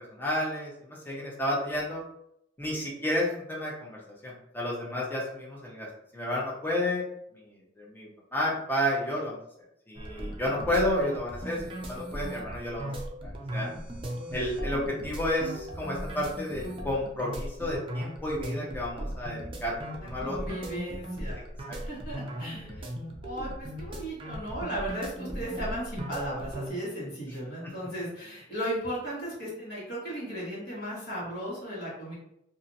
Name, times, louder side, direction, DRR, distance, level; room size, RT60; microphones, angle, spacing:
voice 1, 0.1-2.0 2.6-5.9 6.1-7.0 7.8-9.4 9.9-12.9 13.2-13.7 14.3-20.6 22.6-22.8 27.6-27.7, left 1 dB, 10° left, -4 dB, 0.6 m, -31 dB
sound 1, 9.9-26.7, equal, 25° right, 0.4 m, -38 dB
voice 2, 20.0-21.4 21.7-22.9 23.2-32.1, right 1 dB, 55° left, -7 dB, 1.3 m, -36 dB
2.8 x 2.5 x 2.6 m, 0.77 s
head